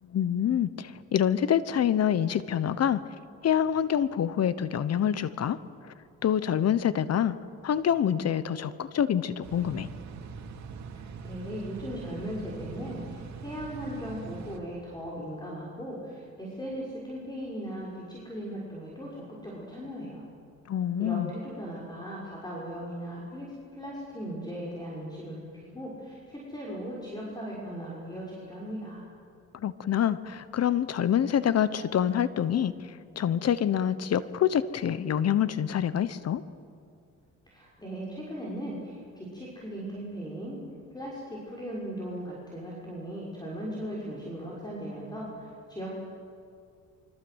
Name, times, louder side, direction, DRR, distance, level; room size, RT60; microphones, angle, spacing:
voice 1, 0.0-3.0 3.4-5.6 6.2-7.4 7.6-9.9 20.7-21.3 29.5-36.4, left 9 dB, 55° left, 15 dB, 1.1 m, -26 dB
Sketchy Neighborhood Night Ambience, 9.4-14.6, right 6 dB, 65° right, 2.5 m, -42 dB
voice 2, 10.9-20.2 21.0-29.0 37.5-40.6 40.9-45.9, equal, 15° left, -5 dB, 6.5 m, -38 dB
26.0 x 25.0 x 8.1 m, 2.4 s
cardioid pair, 90°, 30 cm